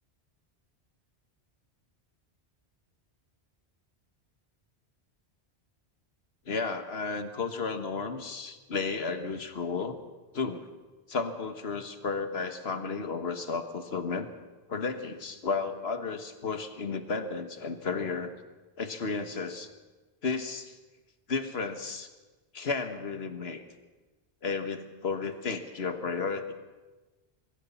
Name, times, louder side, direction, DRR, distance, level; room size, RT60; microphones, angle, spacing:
voice 1, 6.5-10.0 10.3-10.7 11.1-14.3 14.7-18.3 18.8-19.7 20.2-20.8 21.3-22.1 22.5-23.6 24.4-26.5, left 4 dB, 70° left, 8 dB, 1.7 m, -33 dB
23.0 x 15.5 x 7.2 m, 1.2 s
omnidirectional pair, 1.1 m